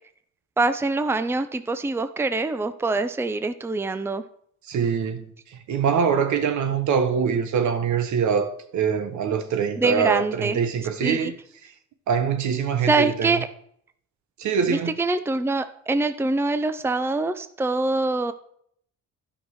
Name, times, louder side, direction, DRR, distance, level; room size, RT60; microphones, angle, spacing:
voice 1, 0.6-4.2 9.8-10.6 11.0-11.3 12.8-13.5 14.7-18.3, right 3 dB, 10° right, 0.6 m, -24 dB
voice 2, 4.7-5.2 5.7-11.3 12.1-13.4 14.4-14.9, right 6 dB, 70° right, 1.3 m, -23 dB
11.5 x 5.8 x 4.8 m
cardioid pair, 90°, 30 cm